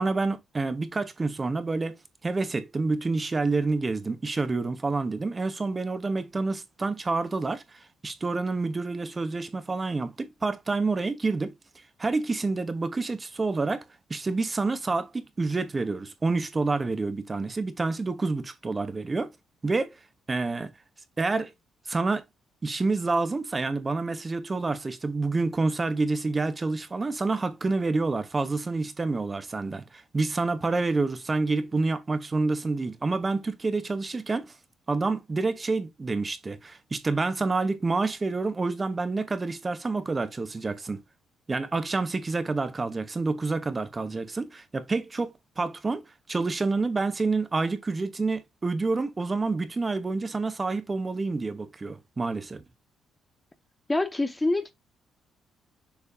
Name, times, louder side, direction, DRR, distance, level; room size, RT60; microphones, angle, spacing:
voice 1, 0.0-2.0 2.2-11.5 12.0-13.8 14.1-19.3 19.6-19.9 20.3-20.7 21.2-21.5 21.8-22.2 22.6-34.5 34.9-41.0 41.5-46.0 46.3-52.6, right 3 dB, 25° right, 1.1 m, -28 dB
voice 2, 53.9-54.7, left 2 dB, 15° left, 0.7 m, -25 dB
6.9 x 4.8 x 2.8 m
cardioid pair, 90°, 0 cm